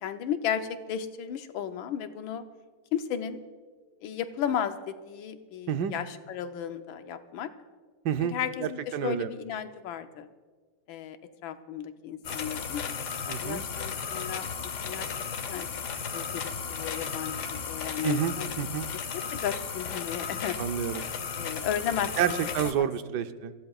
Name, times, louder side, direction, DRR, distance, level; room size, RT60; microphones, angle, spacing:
voice 1, 0.0-2.4 2.9-3.4 4.0-7.5 8.2-10.3 10.9-11.2 11.4-12.8 13.3-15.1 15.5-15.7 16.1-18.5 18.9-20.6 21.4-22.5 22.8-22.9 23.1-23.2, left 9 dB, 85° left, 9 dB, 1.5 m, -34 dB
voice 2, 8.0-9.3 13.3-13.6 18.0-18.9 20.6-21.1 22.2-23.5, right 9 dB, 65° right, 9 dB, 1.2 m, -29 dB
sound 1, 12.2-22.7, left 6 dB, 65° left, 1.4 m, -35 dB
27.5 x 15.0 x 2.4 m, 1.5 s
omnidirectional pair, 2.1 m